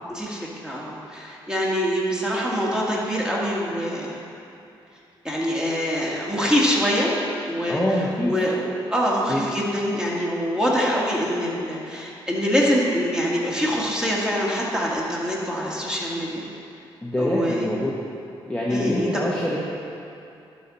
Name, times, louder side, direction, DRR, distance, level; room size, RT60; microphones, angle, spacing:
voice 1, 0.1-4.2 5.2-7.1 7.5-16.4 17.2-17.7 18.7-19.2, equal, 5° right, -5 dB, 1.8 m, -24 dB
voice 2, 7.7-8.3 9.3-9.4 17.0-17.9 18.5-19.6, left 1 dB, 10° left, -6 dB, 1.0 m, -25 dB
11.5 x 4.2 x 4.1 m, 2.7 s
cardioid pair, 65°, 10 cm